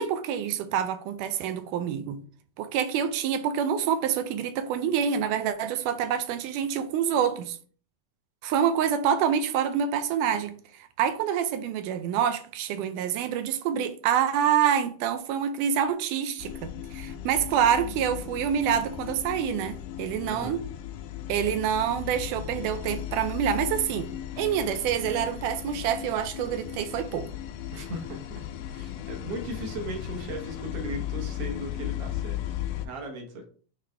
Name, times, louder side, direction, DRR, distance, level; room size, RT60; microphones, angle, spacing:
voice 1, 0.0-2.2 2.6-7.6 8.4-20.6 21.3-24.1 24.4-27.3, right 8 dB, 80° right, 2.1 m, -27 dB
sound 1, 16.4-32.9, left 11 dB, 85° left, 2.2 m, -36 dB
voice 2, 20.2-20.6 27.7-28.2 28.7-32.6 32.8-33.5, right 1 dB, 60° right, 1.6 m, -37 dB
9.5 x 3.2 x 3.3 m
omnidirectional pair, 3.8 m